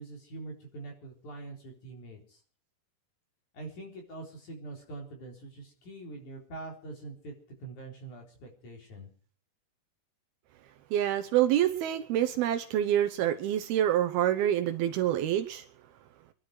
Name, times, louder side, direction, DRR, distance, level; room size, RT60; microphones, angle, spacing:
voice 1, 0.0-2.4 3.5-7.3 7.6-9.1, right 2 dB, 45° left, 1 dB, 5.0 m, -44 dB
voice 2, 10.9-15.6, right 11 dB, 75° right, 7 dB, 2.6 m, -27 dB
25.0 x 11.5 x 4.8 m, 0.40 s
omnidirectional pair, 4.9 m